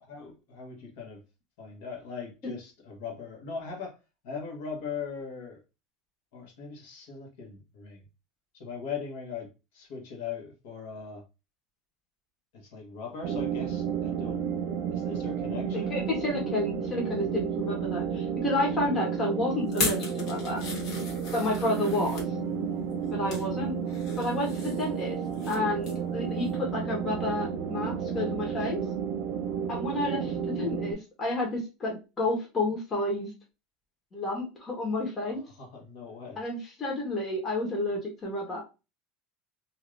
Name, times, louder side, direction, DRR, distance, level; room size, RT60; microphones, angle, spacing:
voice 1, 0.1-1.2 1.6-4.0 4.2-5.6 6.3-8.0 8.5-11.2 12.5-14.4 14.9-15.9 16.3-16.5 18.9-19.0 35.2-36.4, left 5 dB, 70° left, 0 dB, 1.2 m, -40 dB
sound 1, 13.2-30.9, right 7 dB, 75° right, 0.6 m, -32 dB
voice 2, 15.7-20.6 21.3-22.3 23.1-23.8 24.2-25.2 25.5-28.8 29.7-33.3 34.1-35.4 36.4-38.6, left 2 dB, 20° left, -1 dB, 1.1 m, -30 dB
sound 2, 19.7-22.3 22.9-23.5 23.9-25.6 25.8-26.1 26.5-26.6, left 3 dB, 55° left, 1.3 m, -37 dB
2.7 x 2.5 x 3.2 m, 0.28 s
supercardioid pair, 155°, 0 cm